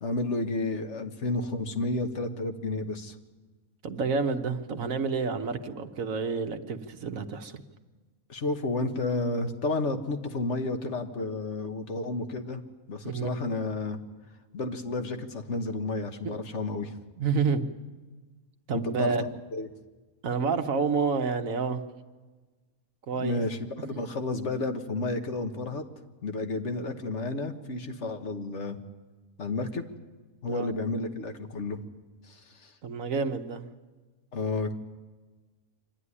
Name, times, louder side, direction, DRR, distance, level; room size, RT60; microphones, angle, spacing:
voice 1, 0.0-3.1 8.3-12.6 12.9-14.0 14.5-16.9 18.7-19.1 19.5-19.7 23.2-25.8 26.2-28.8 29.4-29.8 30.4-31.8 32.2-32.7 34.3-34.7, left 2 dB, 55° left, 6 dB, 1.7 m, -31 dB
voice 2, 3.8-7.6 13.0-13.3 16.2-16.4 17.2-17.6 18.7-19.2 20.2-21.8 23.1-23.4 30.5-30.7 32.8-33.6, right 5 dB, 75° right, 7 dB, 1.5 m, -29 dB
25.0 x 13.0 x 9.8 m, 1.3 s
omnidirectional pair, 1.4 m